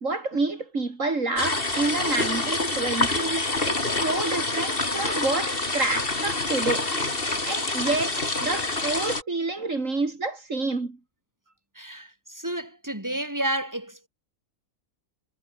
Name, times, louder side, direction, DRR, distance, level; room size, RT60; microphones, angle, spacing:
voice 1, 0.0-6.9 7.5-11.0, right 3 dB, 60° right, 3.5 m, -28 dB
sound 1, 1.4-9.2, left 2 dB, 40° left, 3.4 m, -27 dB
voice 2, 11.8-14.1, right 1 dB, 10° right, 5.6 m, -31 dB
omnidirectional pair, 1.5 m